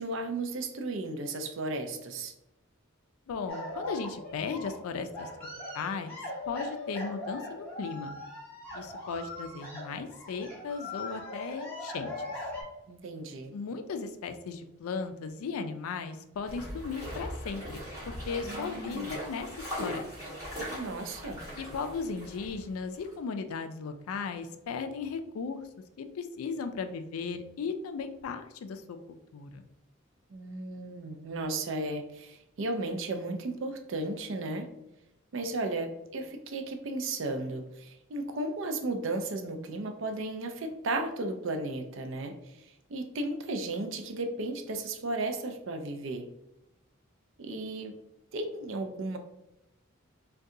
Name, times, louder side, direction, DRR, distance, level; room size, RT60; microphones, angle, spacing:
voice 1, 0.0-2.3 12.9-13.5 18.5-19.2 20.7-21.4 30.3-34.7 35.3-46.3 47.4-48.0 48.3-49.2, right 2 dB, 60° right, 6 dB, 0.4 m, -35 dB
voice 2, 3.3-5.3 5.7-6.2 6.5-8.1 8.7-12.1 13.5-17.8 18.1-20.1 21.6-25.6 26.0-29.6, left 5 dB, 80° left, 8 dB, 0.3 m, -36 dB
sound 1, 3.5-12.6, left 2 dB, 10° left, 1.2 m, -40 dB
sound 2, 16.5-22.7 22.9-23.1, equal, 15° right, 1.4 m, -40 dB
2.7 x 2.2 x 3.6 m, 0.89 s
head